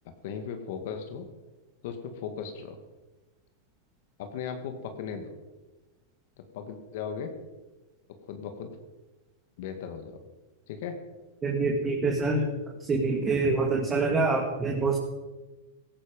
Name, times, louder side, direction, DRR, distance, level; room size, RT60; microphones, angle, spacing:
voice 1, 0.2-1.3 1.8-2.8 4.2-5.3 6.5-7.3 8.3-8.7 9.6-10.1 10.7-11.0, left 7 dB, 60° left, 7 dB, 2.0 m, -37 dB
voice 2, 11.4-12.5 12.9-15.0, right 3 dB, 20° right, 0 dB, 2.3 m, -25 dB
16.5 x 14.5 x 5.4 m, 1.2 s
hypercardioid pair, 140°, 0 cm